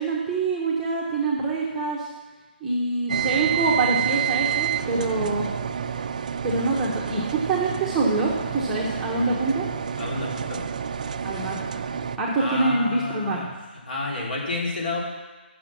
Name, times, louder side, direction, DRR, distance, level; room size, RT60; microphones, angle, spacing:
voice 1, 0.0-2.1 2.6-5.5 6.4-9.7 11.2-11.6 12.2-13.5, right 3 dB, 5° right, -6 dB, 0.8 m, -25 dB
sound 1, 3.1-12.2, right 8 dB, 40° right, 0.4 m, -29 dB
voice 2, 5.0-5.3 10.0-10.7 12.4-13.5 13.9-15.0, left 2 dB, 60° left, -2 dB, 2.9 m, -30 dB
8.5 x 6.2 x 7.3 m, 1.2 s
hypercardioid pair, 170°, 6 cm